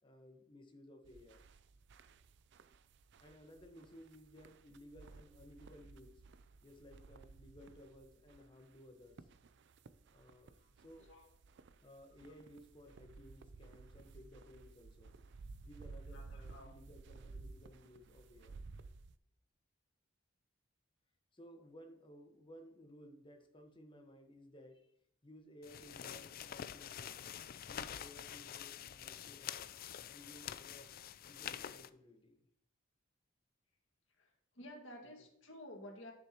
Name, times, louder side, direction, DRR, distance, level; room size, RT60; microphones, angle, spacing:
voice 1, 0.0-1.4 3.2-6.2 6.6-9.3 10.1-11.2 11.8-15.2 15.6-18.6 21.3-24.9 25.2-27.2 27.7-29.7 30.0-30.9 31.3-32.5 35.2-35.3, equal, 25° left, 4 dB, 1.2 m, -58 dB
sound 1, 1.0-19.1, right 3 dB, 60° right, 0.4 m, -56 dB
voice 2, 16.1-16.7 34.2-34.3 34.6-36.1, left 1 dB, 70° left, 1 dB, 2.0 m, -52 dB
sound 2, 25.6-31.9, left 9 dB, 50° left, 0.4 m, -47 dB
10.5 x 6.6 x 2.9 m, 0.74 s
head